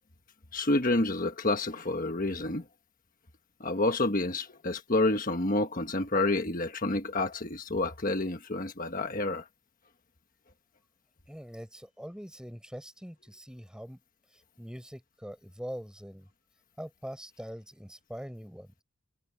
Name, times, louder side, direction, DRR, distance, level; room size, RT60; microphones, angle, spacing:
voice 1, 0.5-2.6 3.6-9.5, left 2 dB, 40° left, 1.4 m, -29 dB
voice 2, 11.3-14.0 14.3-16.3 16.8-18.8, equal, 5° right, 5.7 m, -43 dB
head